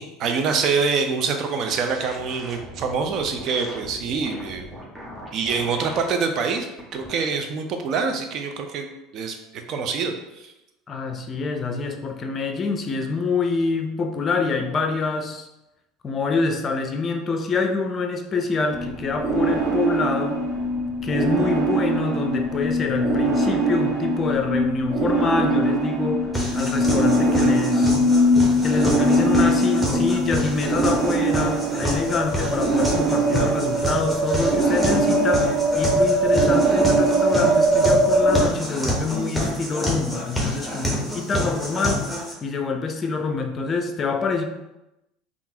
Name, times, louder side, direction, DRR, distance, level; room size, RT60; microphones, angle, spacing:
voice 1, 0.0-4.7 5.3-6.7 6.9-8.9 9.1-9.4 9.7-10.5, right 5 dB, 50° right, 5 dB, 0.5 m, -25 dB
sound 1, 1.7-6.1 6.6-7.1, equal, 20° right, 1.0 m, -40 dB
voice 2, 10.9-15.5 16.0-20.5 21.0-28.0 28.6-42.1 42.4-44.4, left 4 dB, 35° left, 5 dB, 0.5 m, -26 dB
sound 2, 18.7-38.4, right 1 dB, 65° right, 1.1 m, -21 dB
sound 3, 26.3-42.3, equal, 5° right, 1.0 m, -28 dB
3.6 x 2.4 x 2.8 m, 0.94 s
hypercardioid pair, 70°, 0 cm